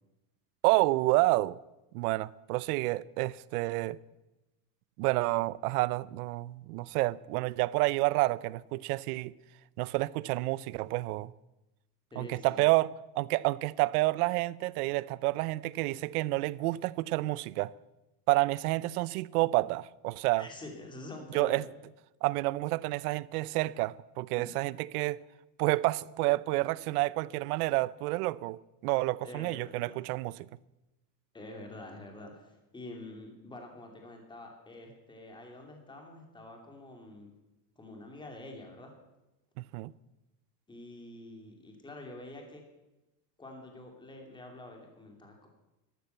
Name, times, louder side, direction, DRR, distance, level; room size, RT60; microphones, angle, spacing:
voice 1, 0.6-1.6 1.9-4.0 5.0-9.3 9.8-11.3 12.2-12.9 13.2-17.7 18.3-20.5 21.3-21.6 22.2-25.2 25.6-30.4 39.7-39.9, right 20 dB, 65° right, 0.7 m, -29 dB
voice 2, 12.1-12.6 20.4-21.7 24.3-24.5 29.2-30.1 31.3-37.3 37.8-38.9 40.7-42.6 43.4-45.5, left 1 dB, 10° left, 2.8 m, -47 dB
13.5 x 12.5 x 8.0 m
supercardioid pair, 155°, 50 cm